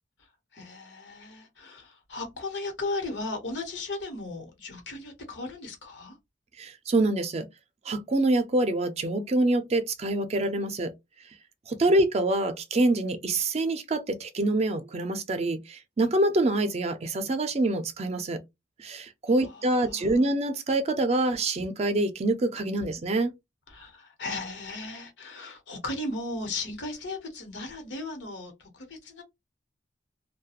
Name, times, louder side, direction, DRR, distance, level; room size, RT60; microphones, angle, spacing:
voice 1, 0.5-6.2 11.8-11.9 19.3-20.1 23.7-29.2, left 2 dB, 90° left, 1.0 m, -36 dB
voice 2, 6.6-7.5 7.9-10.9 11.7-18.4 18.8-23.3, right 2 dB, 35° right, 0.4 m, -26 dB
2.4 x 2.2 x 2.8 m
head